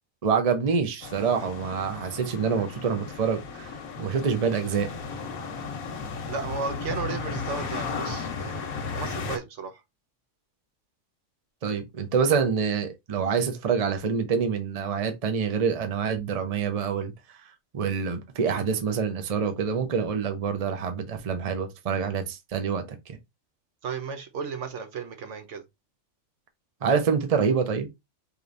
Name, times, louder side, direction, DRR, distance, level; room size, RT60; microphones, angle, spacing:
voice 1, 0.2-4.9 11.6-17.1 17.7-23.2 26.8-27.9, right 6 dB, 35° right, 0.7 m, -26 dB
sound 1, 1.0-9.4, left 5 dB, 85° left, 1.3 m, -35 dB
voice 2, 6.3-9.8 18.4-18.6 23.8-25.6, right 5 dB, 65° right, 1.0 m, -34 dB
5.0 x 3.1 x 2.5 m
omnidirectional pair, 1.4 m